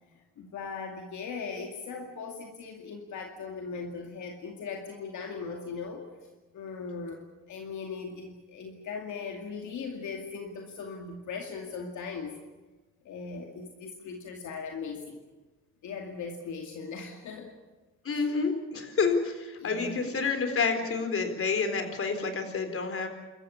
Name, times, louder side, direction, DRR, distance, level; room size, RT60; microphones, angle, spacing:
voice 1, 0.2-6.3 6.5-12.3 13.0-15.2 15.8-17.5 18.1-18.3 19.6-20.1, left 5 dB, 75° left, 2 dB, 2.4 m, -39 dB
voice 2, 18.0-23.1, left 4 dB, 45° left, 6 dB, 4.2 m, -29 dB
27.5 x 14.5 x 8.6 m, 1.2 s
cardioid pair, 90°, 30 cm